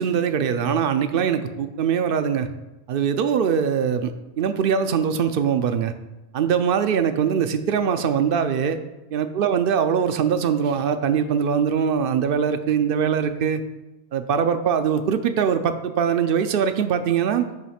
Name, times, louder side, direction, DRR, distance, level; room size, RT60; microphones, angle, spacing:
voice 1, 0.0-2.5 2.9-5.9 6.3-8.8 9.1-13.6 14.1-17.5, right 7 dB, 60° right, 10 dB, 0.6 m, -22 dB
9.2 x 3.1 x 5.7 m, 1.0 s
omnidirectional pair, 1.2 m